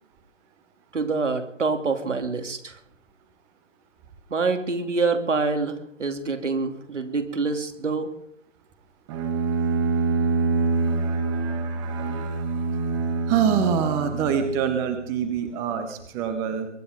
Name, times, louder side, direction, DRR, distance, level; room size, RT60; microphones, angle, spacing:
voice 1, 0.9-2.8 4.3-8.1, right 4 dB, 75° right, 6 dB, 3.1 m, -26 dB
Bowed string instrument, 9.1-14.9, right 4 dB, 25° right, 1.9 m, -26 dB
voice 2, 13.3-16.7, right 7 dB, 10° right, 9 dB, 0.7 m, -24 dB
22.5 x 12.0 x 5.3 m, 0.70 s
figure-of-eight pair, 140°, 37 cm